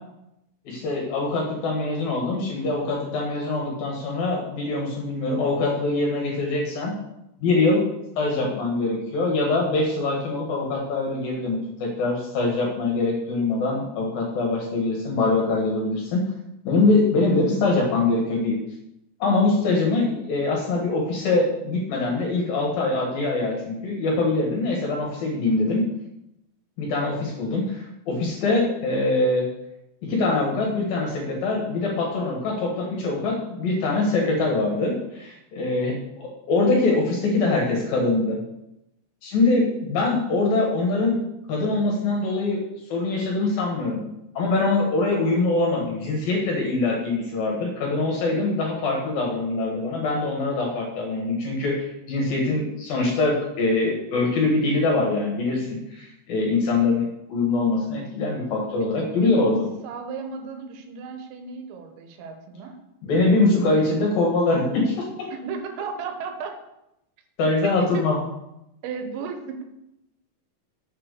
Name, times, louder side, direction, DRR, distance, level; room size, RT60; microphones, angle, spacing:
voice 1, 0.7-6.9 7.4-7.8 8.2-16.2 16.6-18.6 19.2-25.9 26.8-29.5 30.1-38.4 39.2-41.2 41.5-42.6 42.9-44.0 44.3-59.6 63.0-64.9 67.4-68.2, left 3 dB, 60° left, -2 dB, 2.7 m, -23 dB
voice 2, 58.8-59.5 59.8-62.8 65.3-66.6 67.6-68.0 68.8-69.6, right 5 dB, 90° right, 5 dB, 3.7 m, -35 dB
7.3 x 6.0 x 6.5 m, 0.86 s
omnidirectional pair, 5.8 m